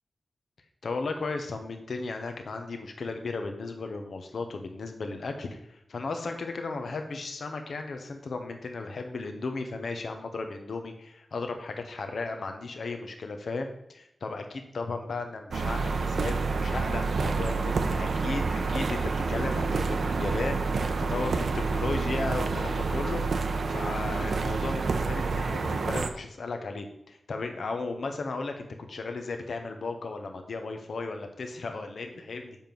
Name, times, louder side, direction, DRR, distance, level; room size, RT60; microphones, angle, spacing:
voice 1, 0.8-19.0 19.3-23.2 23.7-32.6, left 3 dB, 85° left, 5 dB, 0.9 m, -35 dB
sound 1, 15.5-26.1, right 4 dB, 90° right, 0.7 m, -28 dB
7.2 x 5.4 x 6.0 m, 0.75 s
wide cardioid pair, 65°, 0 cm